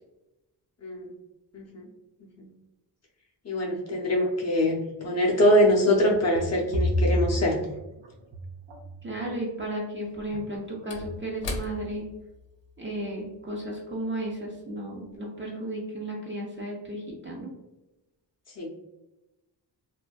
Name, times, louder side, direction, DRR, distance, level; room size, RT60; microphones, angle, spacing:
voice 1, 0.8-1.1 1.5-1.8 2.4-2.5 3.4-7.6 18.6-18.7, left 1 dB, 40° left, -2 dB, 0.5 m, -23 dB
Sinking Submarine, 5.5-9.0 10.3-10.7 11.0-11.4, equal, 80° right, 0.6 m, -30 dB
Slam / Wood, 8.4-8.5 10.0-14.7 15.0-15.2, left 3 dB, 85° left, 0.6 m, -41 dB
voice 2, 9.0-12.1 12.8-17.5, right 1 dB, 30° right, -3 dB, 0.4 m, -34 dB
2.5 x 2.3 x 2.2 m, 0.99 s
wide cardioid pair, 175°, 43 cm